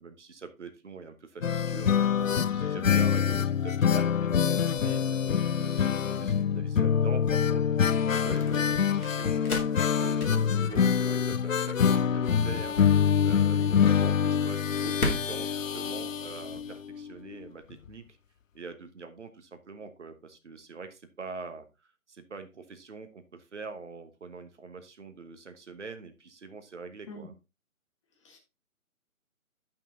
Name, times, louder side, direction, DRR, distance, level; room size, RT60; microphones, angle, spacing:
voice 1, 0.0-7.6 8.1-9.4 9.9-18.0 18.5-21.6 22.1-27.3, right 4 dB, 55° right, 9 dB, 1.3 m, -44 dB
sound 1, 1.4-17.1 17.3-17.4 17.7-17.8, left 7 dB, 65° left, 0.6 m, -25 dB
voice 2, 2.8-2.9 10.7-10.9 13.5-13.6 27.1-27.3 28.2-28.4, left 4 dB, 20° left, 2 dB, 1.5 m, -43 dB
sound 2, 4.2-16.9, left 2 dB, 80° left, 2.5 m, -40 dB
10.5 x 5.8 x 3.7 m, 0.26 s
figure-of-eight pair, 145°, 43 cm